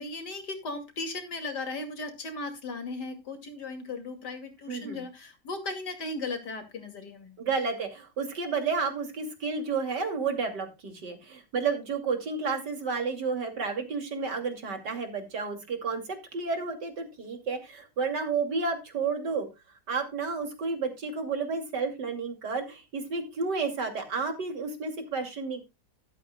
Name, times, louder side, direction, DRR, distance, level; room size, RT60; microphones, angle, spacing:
voice 1, 0.0-7.3, left 3 dB, 75° left, 6 dB, 3.0 m, -37 dB
voice 2, 4.7-5.0 7.4-19.5 19.9-25.6, right 4 dB, 80° right, 5 dB, 3.2 m, -31 dB
12.5 x 12.5 x 2.2 m, 0.23 s
omnidirectional pair, 1.8 m